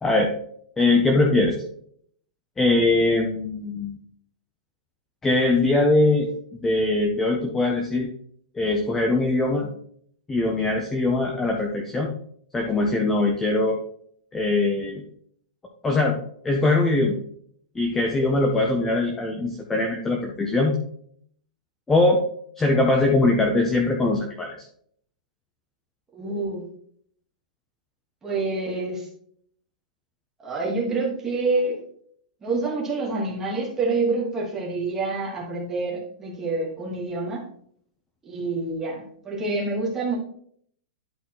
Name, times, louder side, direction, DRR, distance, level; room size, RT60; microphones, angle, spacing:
voice 1, 0.0-0.3 0.8-1.6 2.6-4.0 5.2-8.1 8.5-9.7 10.3-12.1 12.5-13.8 14.3-15.0 15.8-16.2 16.4-17.1 17.8-20.8 21.9-22.2 22.6-24.5, left 2 dB, 5° left, 1 dB, 0.5 m, -21 dB
voice 2, 26.1-26.7 28.2-29.1 30.4-31.8 32.4-37.4 38.2-40.2, right 3 dB, 10° right, -3 dB, 1.3 m, -27 dB
10.5 x 4.1 x 2.9 m, 0.62 s
supercardioid pair, 175°, 5 cm